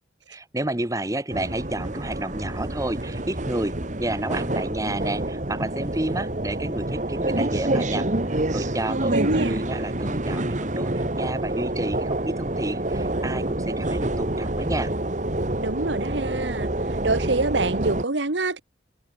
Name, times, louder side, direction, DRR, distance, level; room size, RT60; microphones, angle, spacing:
voice 1, 0.3-3.7 4.0-14.9, right 1 dB, 20° right, 1.4 m, -31 dB
sound 1, 1.3-18.0, right 1 dB, 40° right, 1.9 m, -27 dB
voice 2, 8.9-9.6 15.6-16.7 17.0-18.6, right 2 dB, 80° right, 1.7 m, -25 dB
open air
head